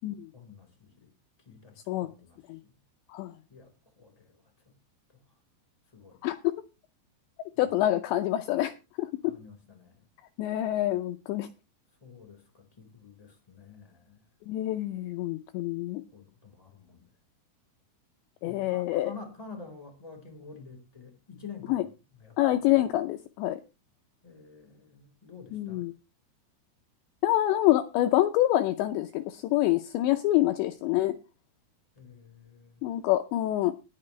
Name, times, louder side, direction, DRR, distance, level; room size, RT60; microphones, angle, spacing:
voice 1, 0.3-1.1 1.4-2.7 3.5-4.7 5.1-5.2 5.9-6.2 7.5-7.8 9.2-10.1 12.0-14.2 16.1-17.1 18.4-21.9 22.2-22.8 24.2-25.9 32.0-32.9, left 5 dB, 10° left, 3.7 m, -49 dB
voice 2, 6.2-6.5 7.6-9.3 10.4-11.5 14.5-16.0 18.4-19.1 21.7-21.8 22.4-23.6 25.5-25.9 27.2-31.1 32.8-33.7, left 14 dB, 85° left, 2.5 m, -26 dB
19.5 x 6.8 x 3.3 m
omnidirectional pair, 5.9 m